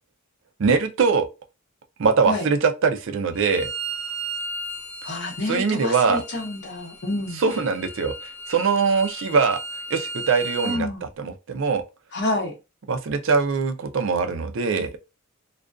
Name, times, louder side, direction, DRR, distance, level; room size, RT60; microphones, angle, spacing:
voice 1, 0.6-1.3 2.0-3.7 5.5-6.2 7.4-8.1 8.5-9.6 9.9-11.8 12.9-15.0, right 5 dB, 65° right, 0.4 m, -22 dB
Bowed string instrument, 3.3-10.8, right 2 dB, 85° left, 0.9 m, -35 dB
voice 2, 5.0-7.4 10.6-11.0 12.1-12.5, left 1 dB, 55° left, 0.8 m, -28 dB
2.4 x 2.2 x 2.3 m
head